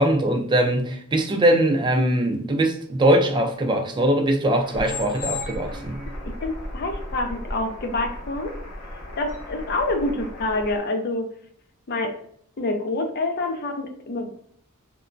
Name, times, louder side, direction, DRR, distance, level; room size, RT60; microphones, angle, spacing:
voice 1, 0.0-6.0, right 1 dB, 20° right, 0.3 m, -21 dB
sound 1, 4.5-10.8, left 2 dB, 70° left, 0.8 m, -35 dB
voice 2, 6.2-8.6 9.2-11.3 11.9-12.2 12.6-14.3, left 2 dB, 45° left, 0.4 m, -27 dB
2.9 x 2.2 x 2.5 m
head